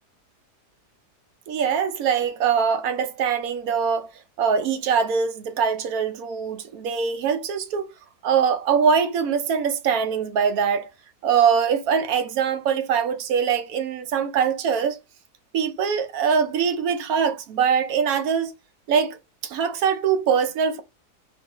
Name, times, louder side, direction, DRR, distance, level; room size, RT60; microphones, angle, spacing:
voice 1, 1.5-4.1 4.4-7.9 8.2-10.9 11.2-15.0 15.5-18.5 18.9-19.2 19.4-20.8, right 7 dB, 65° right, 1.0 m, -22 dB
3.7 x 2.6 x 2.9 m
omnidirectional pair, 1.8 m